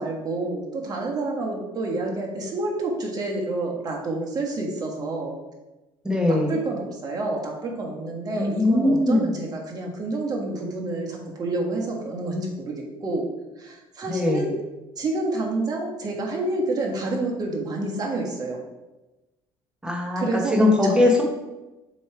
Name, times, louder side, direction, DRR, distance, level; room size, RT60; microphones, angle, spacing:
voice 1, 0.0-5.3 6.3-13.3 13.6-14.5 15.0-18.6 20.1-21.0, right 2 dB, 35° right, -1 dB, 1.4 m, -28 dB
voice 2, 6.0-6.5 8.4-9.2 14.1-14.5 19.8-21.2, left 2 dB, 5° right, 0 dB, 1.4 m, -20 dB
7.1 x 3.1 x 4.6 m, 1.0 s
cardioid pair, 115°, 12 cm